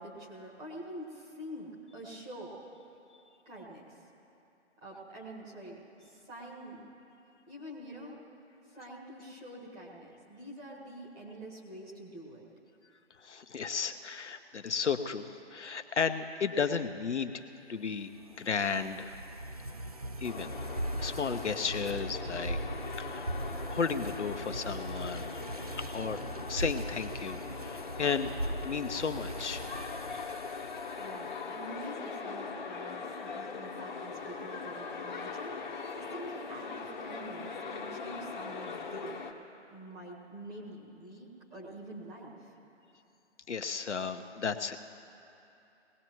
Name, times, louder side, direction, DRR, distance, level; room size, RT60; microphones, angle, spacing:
voice 1, 0.0-2.6 3.5-4.0 4.8-6.9 7.5-8.2 8.7-12.5 31.0-35.6 36.0-39.2 39.7-42.5, right 1 dB, 10° right, -5 dB, 1.8 m, -46 dB
voice 2, 13.2-17.3 17.7-19.2 20.2-20.7 21.0-22.6 23.0-23.3 23.7-26.2 26.5-28.3 28.6-29.6 43.5-44.8, left 5 dB, 70° left, 9 dB, 1.0 m, -34 dB
sound 1, 18.0-31.4, right 1 dB, 35° right, 0.4 m, -40 dB
sound 2, 20.2-39.3, left 5 dB, 40° left, 1.2 m, -41 dB
20.5 x 18.0 x 3.1 m, 2.8 s
figure-of-eight pair, 150°, 36 cm